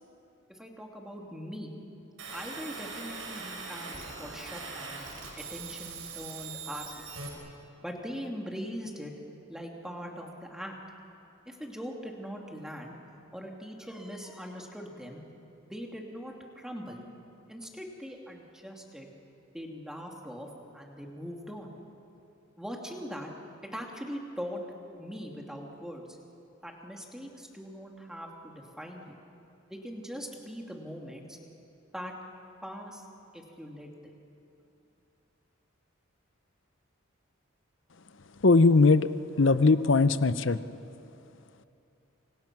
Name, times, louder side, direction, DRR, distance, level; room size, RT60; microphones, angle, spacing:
voice 1, 0.5-1.7 2.3-5.1 5.4-6.9 7.8-9.1 9.5-10.7 11.5-13.0 13.3-15.2 15.6-17.0 17.4-19.1 19.5-21.7 22.6-23.3 23.7-24.6 25.0-26.2 26.6-29.2 29.7-31.4 31.9-32.1 32.6-33.1 33.3-34.1, equal, 5° right, 0 dB, 2.4 m, -41 dB
sound 1, 2.2-7.3, right 4 dB, 80° right, 5.6 m, -41 dB
voice 2, 38.4-39.1 39.4-40.6, left 3 dB, 65° left, 13 dB, 0.8 m, -20 dB
28.5 x 26.5 x 6.1 m, 2.8 s
head